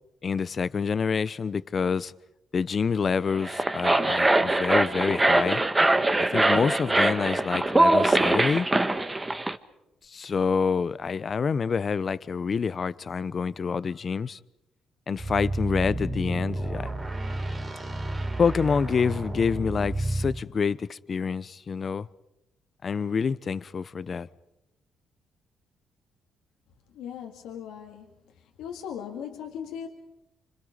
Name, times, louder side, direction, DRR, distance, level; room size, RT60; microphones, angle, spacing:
voice 1, 0.2-2.1 2.5-5.6 6.3-8.7 10.1-14.4 15.1-16.9 18.4-22.1 22.8-24.3, left 5 dB, 40° left, 0.8 m, -27 dB
sound 1, 3.3-9.6, right 2 dB, 15° right, 1.3 m, -22 dB
sound 2, 15.2-20.4, right 1 dB, 30° right, 3.7 m, -31 dB
voice 2, 26.9-28.1 28.6-29.9, left 8 dB, 90° left, 2.1 m, -38 dB
28.5 x 25.5 x 5.1 m
cardioid pair, 90°, 0 cm